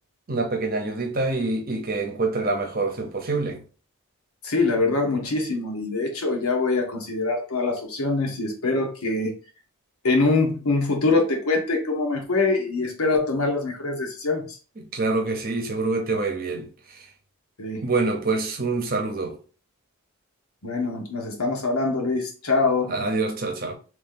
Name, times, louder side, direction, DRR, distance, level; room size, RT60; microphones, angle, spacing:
voice 1, 0.3-3.6 14.8-17.0 17.8-19.4 22.9-23.8, right 3 dB, 40° right, 0.8 m, -26 dB
voice 2, 4.4-9.4 10.0-14.6 17.6-17.9 20.6-22.9, left 3 dB, 85° left, 1.2 m, -24 dB
3.1 x 2.8 x 3.6 m
head